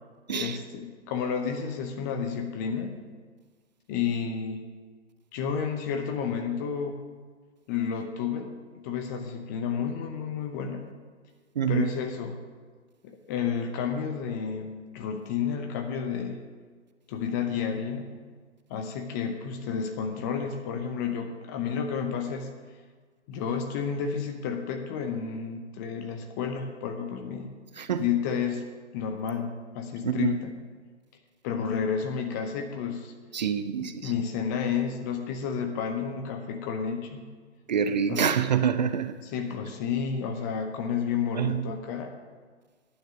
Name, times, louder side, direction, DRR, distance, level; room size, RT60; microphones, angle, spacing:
voice 1, 0.3-3.0 3.9-4.6 5.3-7.0 7.7-10.8 11.7-12.4 13.0-16.4 17.1-18.1 18.7-22.5 23.3-27.5 28.0-28.7 28.9-30.5 31.4-33.1 33.8-37.2 38.1-38.3 39.2-42.1, left 7 dB, 15° left, 4 dB, 0.6 m, -31 dB
voice 2, 11.6-11.9 27.8-28.0 30.0-30.4 33.3-34.1 37.7-39.2 41.4-41.7, right 8 dB, 40° right, 11 dB, 0.5 m, -26 dB
10.0 x 9.0 x 6.9 m, 1.5 s
figure-of-eight pair, 125°, 35 cm